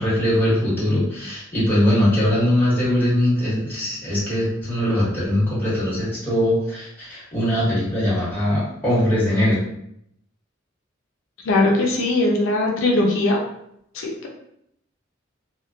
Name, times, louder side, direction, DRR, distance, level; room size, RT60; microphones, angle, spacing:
voice 1, 0.0-9.5, left 1 dB, 10° left, -11 dB, 1.3 m, -21 dB
voice 2, 11.5-13.4 13.9-14.3, left 2 dB, 90° left, 0 dB, 0.4 m, -20 dB
2.8 x 2.1 x 2.3 m, 0.74 s
head